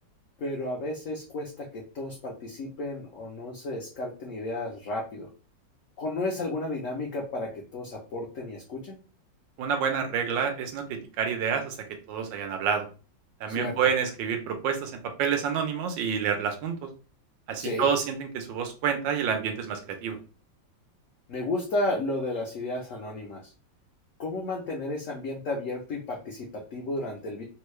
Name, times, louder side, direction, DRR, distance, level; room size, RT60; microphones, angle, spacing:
voice 1, 0.4-5.3 6.0-9.0 13.5-13.9 17.6-17.9 21.3-23.5 24.2-27.4, left 2 dB, 60° left, -2 dB, 0.9 m, -33 dB
voice 2, 9.6-10.8 11.2-11.8 12.1-12.9 13.4-14.9 15.2-16.7 17.5-20.2, right 7 dB, 80° right, 5 dB, 1.4 m, -28 dB
3.6 x 2.2 x 3.1 m, 0.36 s
omnidirectional pair, 2.1 m